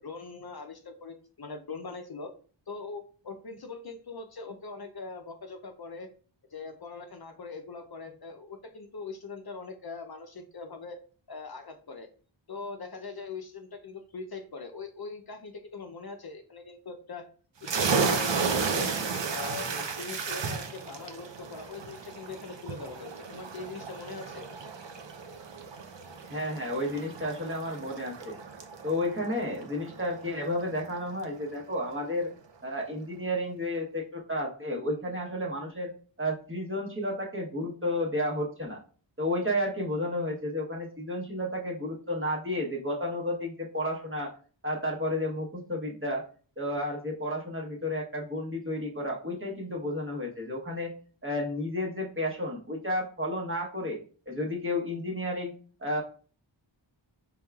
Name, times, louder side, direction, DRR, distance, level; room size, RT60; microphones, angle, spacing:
voice 1, 0.0-2.3 2.7-6.1 6.5-11.0 11.3-12.1 12.5-17.3 17.6-18.9 19.3-24.5, left 4 dB, 55° left, 5 dB, 0.6 m, -41 dB
sound 1, 17.6-31.0, right 5 dB, 65° right, 0.7 m, -33 dB
voice 2, 26.2-28.4 28.8-32.3 32.6-35.9 36.2-38.8 39.2-44.3 44.6-46.2 46.6-50.9 51.2-54.0 54.3-55.5 55.8-56.0, left 1 dB, 25° right, -1 dB, 1.0 m, -32 dB
4.5 x 3.5 x 2.3 m, 0.41 s
wide cardioid pair, 50°, 47 cm